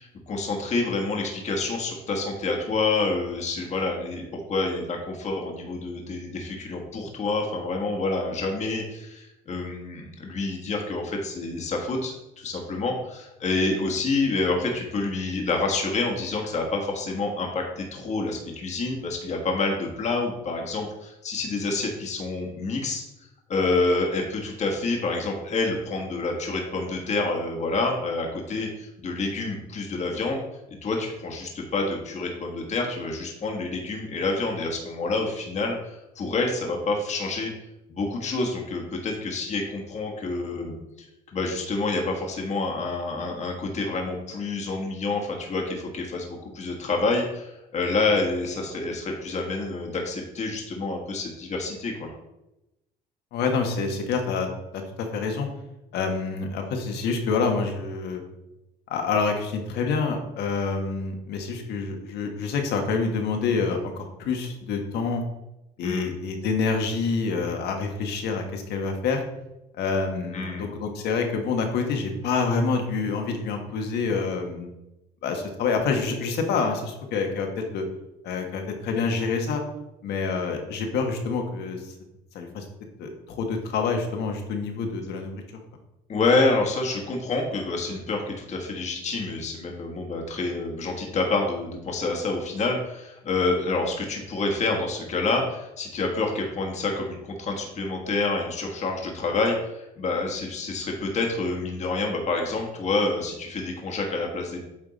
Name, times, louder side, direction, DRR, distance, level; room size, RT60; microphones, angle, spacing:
voice 1, 0.0-4.2 4.5-23.0 23.5-30.4 30.8-37.5 37.9-41.1 41.3-52.1 65.8-66.1 70.3-70.7 86.1-104.7, left 3 dB, 45° left, 1 dB, 1.4 m, -28 dB
voice 2, 53.3-54.5 54.7-55.5 55.9-58.2 58.9-65.2 65.8-69.2 69.7-74.7 75.2-77.8 78.2-79.6 80.0-81.9 82.3-82.6 83.0-85.4, left 4 dB, 75° left, 4 dB, 1.3 m, -27 dB
8.7 x 3.6 x 4.0 m, 0.92 s
cardioid pair, 110°, 17 cm